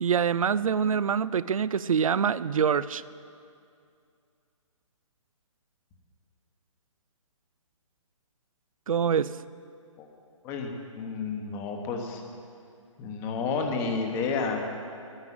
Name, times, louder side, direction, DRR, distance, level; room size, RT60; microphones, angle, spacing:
voice 1, 0.0-3.0 8.9-9.3, right 7 dB, 85° right, 17 dB, 0.5 m, -25 dB
voice 2, 10.4-12.2 13.0-14.6, left 4 dB, 15° left, 3 dB, 1.0 m, -31 dB
10.5 x 9.7 x 9.3 m, 2.4 s
hypercardioid pair, 165°, 17 cm